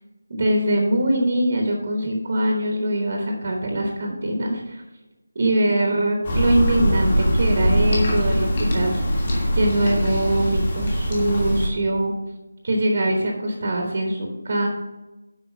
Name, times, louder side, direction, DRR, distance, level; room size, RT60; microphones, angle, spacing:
voice 1, 0.3-4.8 5.3-8.9 9.2-12.1 12.6-14.7, right 1 dB, 30° right, 2 dB, 1.1 m, -23 dB
sound 1, 6.2-11.7, equal, 25° left, 1.5 m, -22 dB
8.0 x 5.5 x 6.2 m, 1.1 s
figure-of-eight pair, 180°, 0 cm